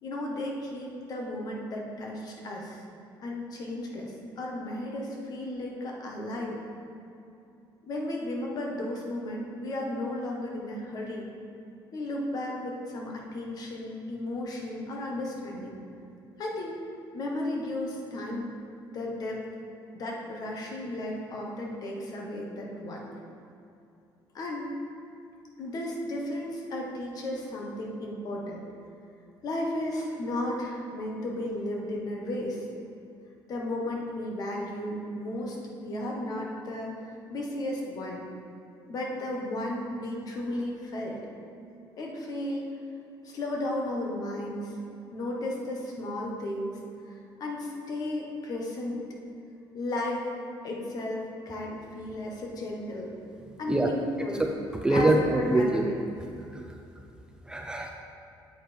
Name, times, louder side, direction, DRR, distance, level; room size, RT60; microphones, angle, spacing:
voice 1, 0.0-2.8 3.2-6.6 7.9-11.3 11.9-15.8 16.4-16.7 17.1-18.5 18.9-19.4 19.9-23.1 24.3-24.7 25.6-28.6 29.4-32.7 33.5-38.3 38.9-41.2 42.0-42.7 43.2-44.7 45.1-46.8 47.1-49.0 49.7-50.3 50.6-53.1 53.6-54.5 54.9-55.9, left 1 dB, 45° left, -1 dB, 1.4 m, -34 dB
voice 2, 54.8-55.9 56.5-56.8 57.5-57.9, right 1 dB, 10° right, 1 dB, 0.4 m, -24 dB
8.6 x 7.9 x 3.5 m, 2.7 s
cardioid pair, 145°, 9 cm